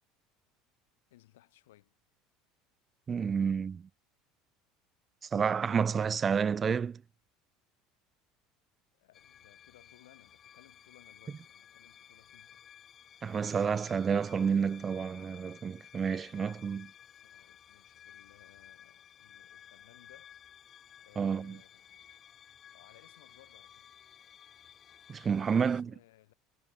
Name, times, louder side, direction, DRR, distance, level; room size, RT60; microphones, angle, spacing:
voice 1, 1.1-2.0 8.9-12.6 17.2-20.4 21.0-22.1 22.7-24.0 25.4-26.3, left 16 dB, 85° left, 6.3 m, -62 dB
voice 2, 3.1-3.9 5.3-7.0 13.2-16.9 21.2-21.6 25.1-25.9, right 6 dB, 30° right, 0.6 m, -30 dB
sound 1, 9.1-25.8, left 9 dB, 40° left, 5.7 m, -56 dB
supercardioid pair, 90°, 0 cm